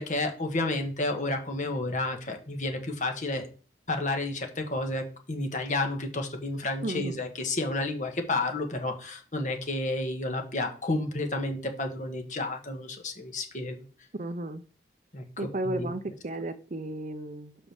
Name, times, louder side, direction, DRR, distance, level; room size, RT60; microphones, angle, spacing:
voice 1, 0.0-3.5 3.9-13.8 15.1-15.2 15.6-15.9, left 2 dB, 45° left, 4 dB, 1.6 m, -31 dB
voice 2, 6.8-7.2 14.2-14.6 15.4-17.6, right 2 dB, 45° right, 11 dB, 0.6 m, -34 dB
5.6 x 5.5 x 6.4 m, 0.39 s
head